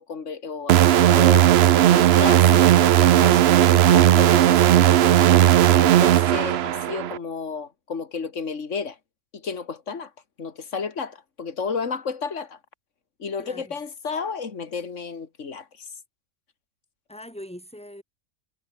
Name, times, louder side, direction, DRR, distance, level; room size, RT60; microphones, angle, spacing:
voice 1, 0.0-1.5 1.9-5.2 5.8-9.0 9.3-10.1 10.4-12.6 13.2-15.9, left 5 dB, 60° left, 2.4 m, -32 dB
sound 1, 0.7-7.2, right 12 dB, 60° right, 0.7 m, -16 dB
voice 2, 13.4-13.7 17.1-18.0, equal, 5° left, 5.8 m, -41 dB
omnidirectional pair, 1.4 m